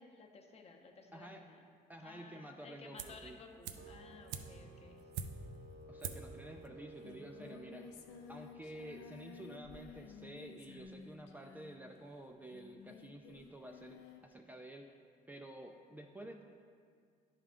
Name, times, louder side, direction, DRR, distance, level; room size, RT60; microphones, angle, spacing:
voice 1, 0.0-1.7 2.0-5.1, left 4 dB, 35° left, 3 dB, 0.8 m, -56 dB
voice 2, 1.1-1.4 1.9-3.4 5.9-7.9 8.3-14.9 15.3-16.4, right 1 dB, 10° right, 2 dB, 0.3 m, -51 dB
sound 1, 3.0-3.3 3.6-5.6 6.0-6.4 6.6-6.7, right 7 dB, 90° right, 0.5 m, -44 dB
sound 2, 3.8-9.8, right 2 dB, 65° right, 1.0 m, -57 dB
Singing, 6.6-14.3, left 5 dB, 85° left, 0.6 m, -54 dB
10.0 x 3.7 x 3.4 m, 2.2 s
cardioid pair, 110°, 17 cm